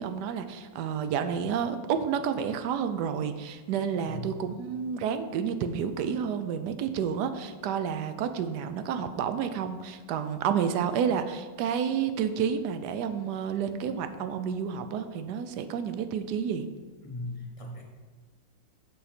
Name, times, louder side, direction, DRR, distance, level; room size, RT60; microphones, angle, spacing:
voice 1, 0.0-16.7, right 7 dB, 75° right, 9 dB, 1.0 m, -30 dB
voice 2, 3.7-4.4 17.0-17.8, left 1 dB, 25° left, -1 dB, 0.9 m, -39 dB
7.5 x 5.8 x 4.3 m, 1.4 s
omnidirectional pair, 2.1 m